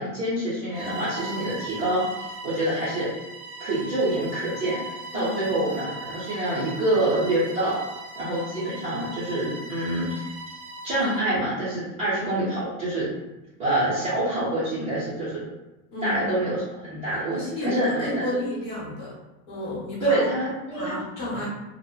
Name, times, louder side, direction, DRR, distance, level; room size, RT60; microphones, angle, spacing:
voice 1, 0.0-3.1 3.6-7.8 8.1-10.3 10.8-13.1 13.6-15.4 16.0-18.3 20.0-20.9, right 1 dB, 20° right, -12 dB, 0.4 m, -26 dB
Bowed string instrument, 0.7-11.3, right 2 dB, 75° right, 0.7 m, -39 dB
voice 2, 5.1-5.5 15.9-16.3 16.8-19.1 19.5-20.2 20.7-21.4, left 1 dB, 30° left, -6 dB, 0.7 m, -32 dB
2.7 x 2.0 x 2.2 m, 1.0 s
supercardioid pair, 170°, 43 cm